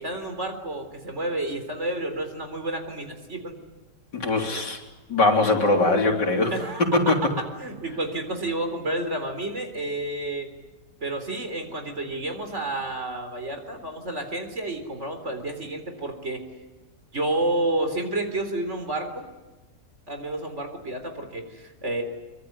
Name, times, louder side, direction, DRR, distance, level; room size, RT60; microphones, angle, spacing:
voice 1, 0.0-3.6 6.5-6.8 7.6-10.5 11.0-16.4 17.1-19.2 20.1-22.0, right 2 dB, 40° right, 6 dB, 4.1 m, -30 dB
voice 2, 4.1-4.8 5.1-6.5 6.9-7.2, left 2 dB, 85° left, 1 dB, 4.2 m, -21 dB
24.0 x 24.0 x 9.7 m, 1.2 s
omnidirectional pair, 1.8 m